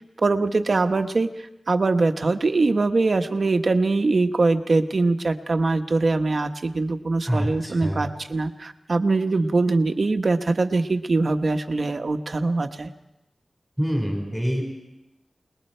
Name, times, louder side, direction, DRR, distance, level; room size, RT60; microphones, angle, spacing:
voice 1, 0.2-1.3 1.7-12.9, right 3 dB, 55° right, 7 dB, 1.2 m, -22 dB
voice 2, 7.3-8.0 13.8-14.6, equal, ahead, 1 dB, 4.7 m, -25 dB
29.5 x 20.0 x 4.5 m, 0.94 s
wide cardioid pair, 70°, 0 cm